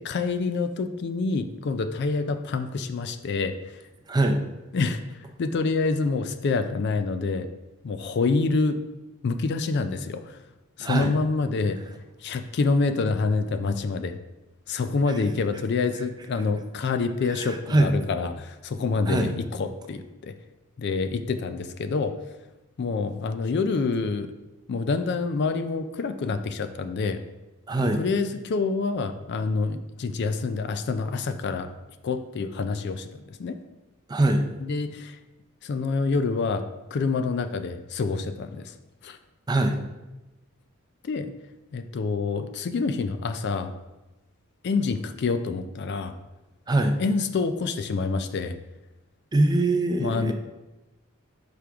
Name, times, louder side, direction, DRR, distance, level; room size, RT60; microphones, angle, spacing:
voice 1, 0.0-3.8 4.7-5.0 5.4-7.5 7.8-8.8 9.2-10.4 10.8-11.8 12.2-14.2 14.7-20.3 20.8-22.2 22.8-24.3 24.7-27.2 27.8-31.7 32.0-33.6 34.6-35.2 35.6-38.7 39.0-39.2 41.0-41.3 41.7-43.7 44.6-46.1 47.0-48.6 50.0-50.3, left 4 dB, 55° left, 10 dB, 0.4 m, -27 dB
voice 2, 4.1-4.4 10.8-11.1 17.3-17.9 19.1-19.3 27.7-28.0 34.1-34.4 39.5-39.8 46.7-46.9 49.3-50.3, right 2 dB, 20° right, 4 dB, 0.5 m, -22 dB
6.1 x 4.9 x 3.4 m, 1.0 s
head